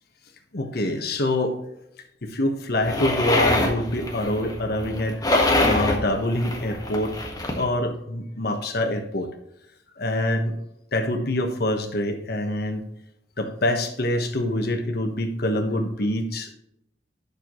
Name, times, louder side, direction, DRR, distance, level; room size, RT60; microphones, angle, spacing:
voice 1, 0.5-1.6 2.2-5.2 5.6-7.1 7.5-9.3 10.0-10.5 10.9-12.8 13.4-16.5, left 1 dB, 60° left, 5 dB, 1.3 m, -25 dB
sound 1, 2.8-7.6, left 1 dB, 20° left, 1.6 m, -25 dB
11.5 x 6.7 x 3.1 m, 0.81 s
head